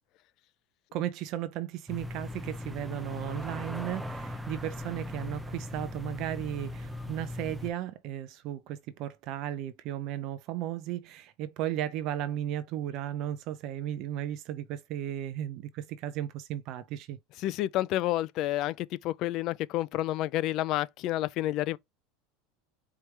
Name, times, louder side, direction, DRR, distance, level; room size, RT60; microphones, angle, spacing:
voice 1, 0.9-17.2, right 12 dB, 50° right, 0.6 m, -35 dB
sound 1, 1.9-7.7, left 1 dB, 5° right, 0.7 m, -39 dB
voice 2, 17.4-21.8, left 15 dB, 45° left, 0.4 m, -29 dB
4.6 x 3.4 x 3.2 m
supercardioid pair, 145°, 0 cm